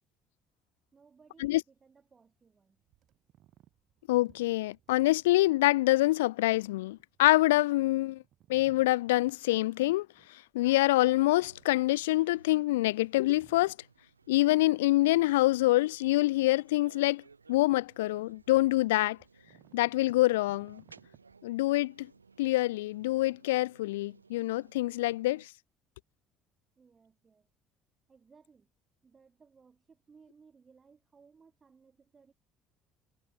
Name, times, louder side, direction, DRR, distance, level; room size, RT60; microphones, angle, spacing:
voice 1, 0.9-2.8 26.8-27.5 28.1-28.7 29.0-32.3, right 5 dB, 30° right, 6.9 m, -61 dB
sound 1, 2.8-12.6 13.0-14.4 14.9-16.2 16.7-16.8 17.2-22.3, right 13 dB, 55° right, 6.2 m, -63 dB
voice 2, 4.1-8.2 8.5-13.8 14.3-17.2 17.5-19.2 19.7-20.8 21.4-22.1 22.4-25.5, left 18 dB, 70° left, 0.3 m, -26 dB
sound 2, 11.3-25.5, right 4 dB, 85° right, 4.8 m, -60 dB
figure-of-eight pair, 55°, 0 cm